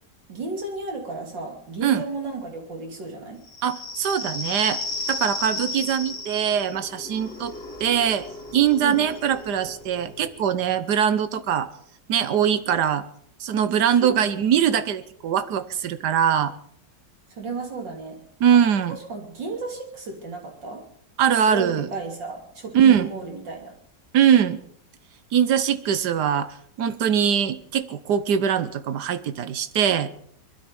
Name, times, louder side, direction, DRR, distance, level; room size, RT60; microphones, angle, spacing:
voice 1, 0.3-3.4 8.8-9.0 14.0-14.6 17.3-18.2 18.5-18.6 18.9-20.8 21.4-23.7, right 3 dB, 85° right, 2 dB, 3.6 m, -33 dB
sound 1, 3.5-10.7, left 2 dB, 65° left, 2.6 m, -34 dB
voice 2, 3.6-4.8 5.1-7.5 7.8-8.3 8.5-11.7 12.1-13.0 13.4-16.5 18.4-19.0 21.2-21.9 22.7-23.1 24.1-24.6 25.3-30.1, right 8 dB, 70° right, 13 dB, 1.5 m, -22 dB
21.5 x 12.5 x 5.4 m, 0.66 s
omnidirectional pair, 1.9 m